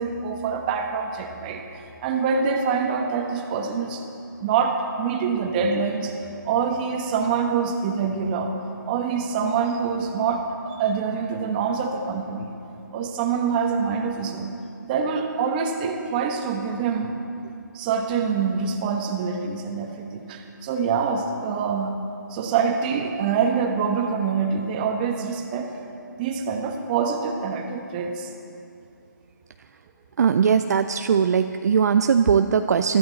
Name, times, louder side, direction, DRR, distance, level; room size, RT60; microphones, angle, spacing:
voice 1, 0.0-4.0 4.4-6.1 6.4-8.5 8.9-12.5 12.9-14.5 14.8-17.1 17.7-21.9 22.3-25.7 26.2-28.3, right 6 dB, 25° right, 3 dB, 1.3 m, -25 dB
voice 2, 30.2-33.0, right 7 dB, 55° right, 8 dB, 0.5 m, -20 dB
21.5 x 13.5 x 4.1 m, 2.7 s
figure-of-eight pair, 150°, 11 cm